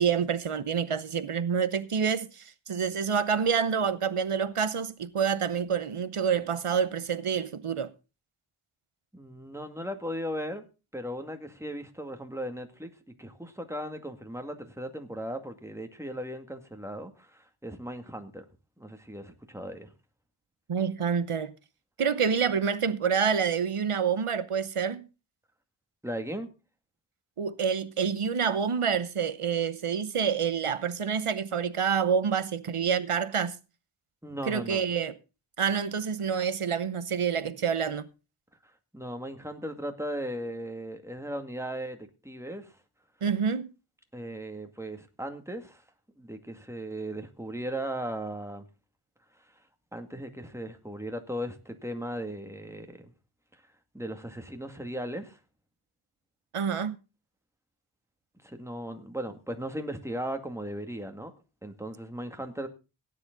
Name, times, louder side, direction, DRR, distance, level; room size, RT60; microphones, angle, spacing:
voice 1, 0.0-7.9 20.7-21.5 22.0-25.0 27.4-33.5 34.5-35.1 35.6-38.1 43.2-43.7 56.5-57.0, right 6 dB, 90° right, 0.9 m, -27 dB
voice 2, 9.1-10.6 10.9-12.9 13.2-18.4 18.8-19.9 26.0-26.5 34.2-34.8 38.6-42.7 44.1-45.8 46.2-48.6 49.9-53.0 53.9-55.4 58.4-61.3 61.6-62.7, equal, 5° right, 2.2 m, -37 dB
17.0 x 9.8 x 3.9 m
wide cardioid pair, 45°, 50 cm